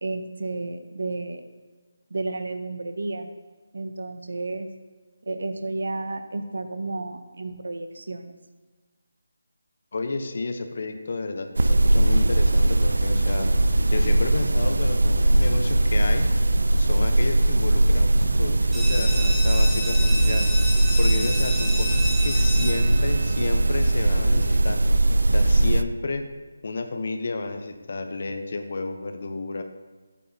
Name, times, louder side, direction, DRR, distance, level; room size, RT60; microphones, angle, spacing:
voice 1, 0.0-1.5 2.1-3.3 3.7-4.7 5.3-8.4, right 2 dB, 70° right, 8 dB, 0.7 m, -32 dB
voice 2, 9.9-13.5 13.9-16.3 16.8-20.5 21.0-24.8 25.3-26.3 26.6-29.6, left 3 dB, 45° left, 7 dB, 0.7 m, -31 dB
sound 1, 11.6-25.8, right 1 dB, 85° right, 0.3 m, -20 dB
sound 2, 18.7-24.2, equal, ahead, 0.5 m, -32 dB
8.9 x 8.2 x 2.7 m, 1.3 s
figure-of-eight pair, 175°, 0 cm